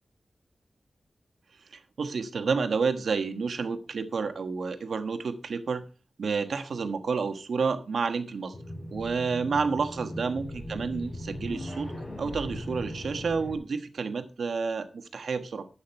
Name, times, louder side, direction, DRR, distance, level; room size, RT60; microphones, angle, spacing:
voice 1, 2.0-5.8 6.2-8.5 8.9-15.7, right 5 dB, 85° right, 1.4 m, -30 dB
sound 1, 8.5-13.6, equal, 30° left, 5.9 m, -38 dB
11.5 x 8.7 x 4.5 m
wide cardioid pair, 115°, 0 cm